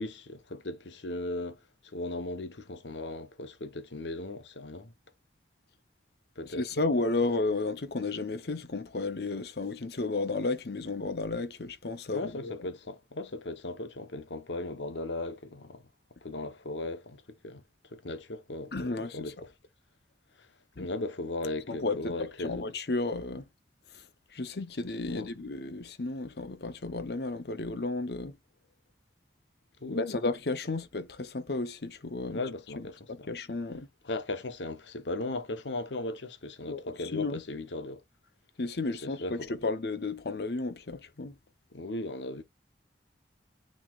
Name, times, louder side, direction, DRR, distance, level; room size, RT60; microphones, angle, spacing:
voice 1, 0.0-1.6 1.9-4.9 6.4-6.7 12.1-15.9 16.2-17.6 17.9-19.5 20.8-22.6 25.1-25.3 29.8-30.2 32.3-33.3 34.0-38.0 38.9-39.5 41.7-42.4, left 2 dB, 85° left, 1.0 m, -37 dB
voice 2, 6.5-12.5 18.7-19.3 20.8-20.9 21.7-23.4 23.9-24.0 24.3-28.4 29.9-32.4 32.8-33.9 36.7-37.4 38.6-41.4, left 3 dB, 60° left, 0.8 m, -33 dB
9.3 x 4.2 x 2.4 m
head